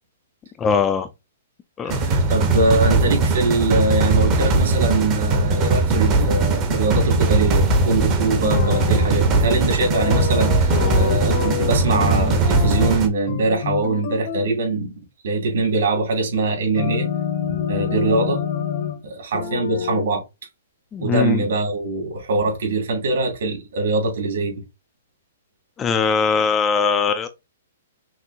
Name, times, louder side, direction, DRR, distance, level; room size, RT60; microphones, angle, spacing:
voice 1, 0.6-1.1 1.8-2.0 20.9-21.4 25.8-27.3, left 5 dB, 10° left, 0.3 m, -20 dB
voice 2, 1.8-14.9 15.2-17.1 17.4-18.4 19.0-20.2 21.0-24.6, right 3 dB, 65° right, 2.6 m, -22 dB
sound 1, 1.9-13.1, right 3 dB, 20° right, 0.8 m, -19 dB
sound 2, 8.4-9.2 9.9-13.0 13.3-14.5 16.7-19.0 19.3-20.0, left 9 dB, 40° left, 0.7 m, -27 dB
5.9 x 2.6 x 2.8 m
hypercardioid pair, 170°, 0 cm